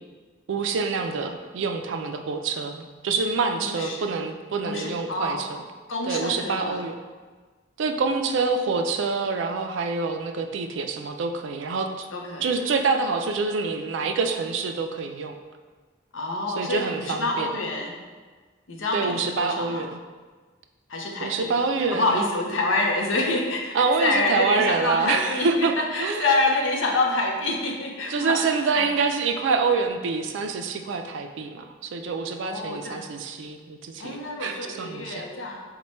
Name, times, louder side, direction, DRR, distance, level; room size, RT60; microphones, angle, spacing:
voice 1, 0.5-5.6 6.0-7.0 7.8-12.1 12.4-15.3 16.6-17.5 18.9-19.9 21.2-22.3 23.7-25.7 26.0-26.3 28.1-35.3, right 4 dB, 75° right, 6 dB, 0.4 m, -26 dB
voice 2, 3.6-4.1 4.6-5.5 5.9-6.8 12.1-12.5 16.1-18.0 18.7-19.9 20.9-21.6 21.9-28.9 32.4-33.1 34.0-35.6, left 2 dB, 90° left, 1 dB, 0.6 m, -27 dB
4.3 x 2.2 x 4.2 m, 1.4 s
head